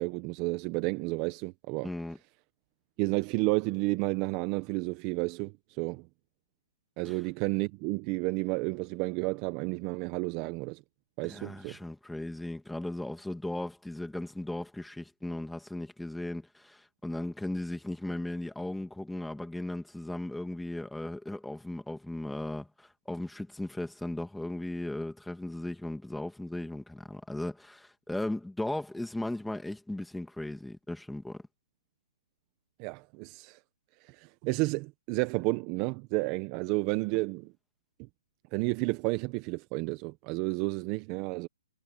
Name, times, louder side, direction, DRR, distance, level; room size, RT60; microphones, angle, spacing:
voice 1, 0.0-1.9 3.0-6.1 7.0-10.8 11.2-11.8 32.8-33.6 34.0-37.5 38.0-38.1 38.5-41.5, right 24 dB, 30° right, 1.1 m, -31 dB
voice 2, 1.8-2.2 7.0-7.2 11.2-31.4, left 1 dB, 5° left, 2.6 m, -37 dB
hypercardioid pair, 150°, 0 cm